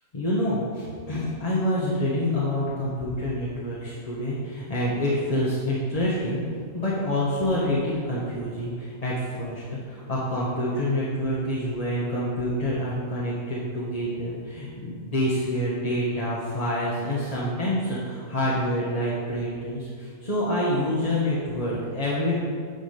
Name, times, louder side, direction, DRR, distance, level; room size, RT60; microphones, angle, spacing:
voice 1, 0.1-6.4 6.7-22.3, left 1 dB, 30° left, -7 dB, 1.1 m, -27 dB
9.3 x 4.9 x 5.2 m, 2.1 s
omnidirectional pair, 1.6 m